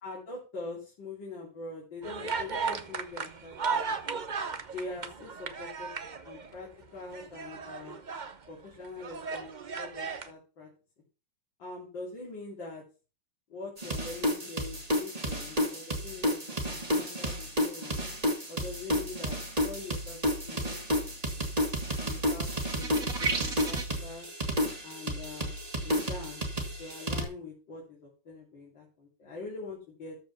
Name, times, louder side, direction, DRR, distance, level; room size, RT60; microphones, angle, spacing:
voice 1, 0.0-3.8 4.7-5.9 6.2-8.0 8.5-9.5 9.8-10.7 11.6-12.8 13.5-18.0 18.5-21.5 22.0-24.3 24.8-25.6 25.8-26.4 26.8-30.2, left 3 dB, 65° left, -4 dB, 3.8 m, -43 dB
sound 1, 2.0-6.6 7.0-8.4 8.8-10.3, right 5 dB, 65° right, 0.4 m, -36 dB
sound 2, 13.8-27.2, equal, 20° right, 2.2 m, -31 dB
sound 3, 22.6-24.0, right 4 dB, 45° right, 2.3 m, -33 dB
13.5 x 5.0 x 5.8 m, 0.34 s
omnidirectional pair, 2.2 m